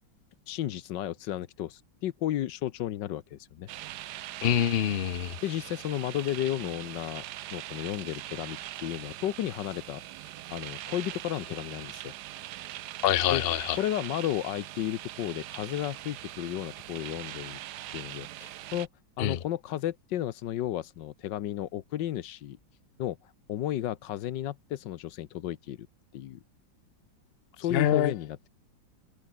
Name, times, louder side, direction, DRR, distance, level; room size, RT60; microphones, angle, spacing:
voice 1, 0.5-3.7 5.4-7.2 7.5-12.1 13.3-13.4 13.8-17.6 17.9-18.9 19.2-22.6 23.0-25.9 26.1-26.4 27.6-28.5, left 12 dB, 70° left, 1.4 m, -33 dB
sound 1, 3.7-18.9, right 14 dB, 70° right, 1.1 m, -42 dB
voice 2, 4.4-5.4 13.0-13.8 19.2-19.4 27.7-28.1, left 10 dB, 85° left, 0.5 m, -25 dB
omnidirectional pair, 2.2 m